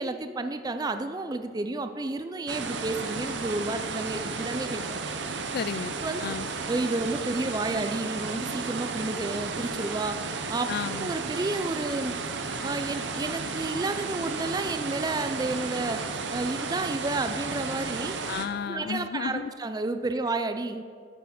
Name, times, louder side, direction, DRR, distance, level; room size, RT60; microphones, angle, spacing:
voice 1, 0.0-5.0 6.0-6.2 6.7-10.2 10.5-10.7 11.0-12.2 12.6-18.2 18.7-20.8, right 2 dB, 20° right, 9 dB, 0.4 m, -31 dB
sound 1, 2.5-18.5, right 4 dB, 65° right, 0.8 m, -33 dB
voice 2, 5.5-5.9 6.2-6.5 10.7-11.1 18.3-19.5, left 6 dB, 55° left, 15 dB, 0.3 m, -32 dB
8.8 x 7.1 x 6.0 m, 2.2 s
head